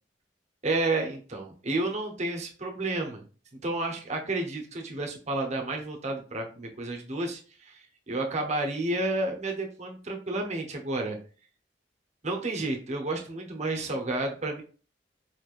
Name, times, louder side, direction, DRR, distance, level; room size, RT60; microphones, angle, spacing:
voice 1, 0.6-3.2 3.6-7.8 8.1-11.2 12.2-14.6, right 2 dB, 40° right, 1 dB, 0.8 m, -31 dB
4.3 x 3.2 x 2.5 m, 0.38 s
head